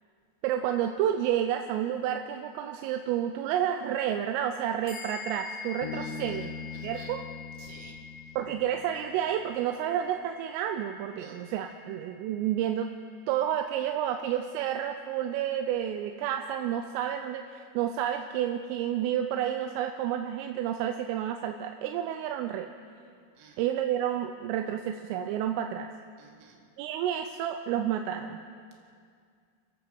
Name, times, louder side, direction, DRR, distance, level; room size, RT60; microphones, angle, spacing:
voice 1, 0.4-6.6 6.8-7.2 8.4-12.9 13.3-22.7 23.6-25.9 26.8-28.4, right 10 dB, 85° right, 6 dB, 3.4 m, -30 dB
sound 1, 4.9-14.6, left 6 dB, 45° left, 4.6 m, -47 dB
Bass guitar, 5.8-9.3, left 6 dB, 70° left, 3.3 m, -41 dB
voice 2, 5.9-7.2 7.6-7.9 11.2-11.4 23.4-23.6 26.2-26.6, right 5 dB, 70° right, 1 dB, 4.5 m, -52 dB
29.0 x 15.5 x 6.1 m, 2.2 s
omnidirectional pair, 5.7 m